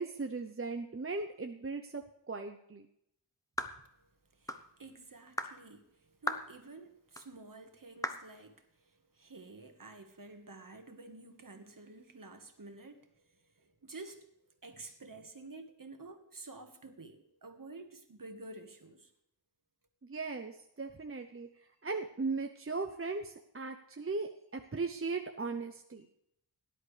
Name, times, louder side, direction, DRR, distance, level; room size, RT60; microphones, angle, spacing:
voice 1, 0.0-2.9 20.0-21.5 21.8-26.1, right 4 dB, 30° right, 0.7 m, -38 dB
sound 1, 3.6-3.8 4.5-4.7 5.4-5.6 6.3-6.5 7.2-7.3 8.0-8.3, left 1 dB, 10° left, 0.9 m, -36 dB
voice 2, 3.8-14.3 14.6-19.1, right 3 dB, 45° right, 1.5 m, -51 dB
18.0 x 11.0 x 3.3 m
wide cardioid pair, 90°, 45 cm